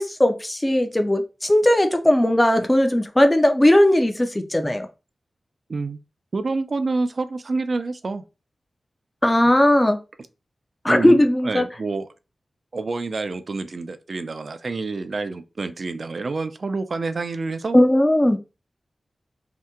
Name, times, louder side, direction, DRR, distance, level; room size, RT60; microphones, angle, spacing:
voice 1, 0.0-4.9 9.2-10.0 10.8-11.6 17.7-18.4, left 1 dB, 15° left, 0.4 m, -18 dB
voice 2, 6.3-8.2 10.9-12.1 12.7-17.8, right 3 dB, 60° right, 0.4 m, -27 dB
2.8 x 2.1 x 3.5 m
wide cardioid pair, 75°, 0 cm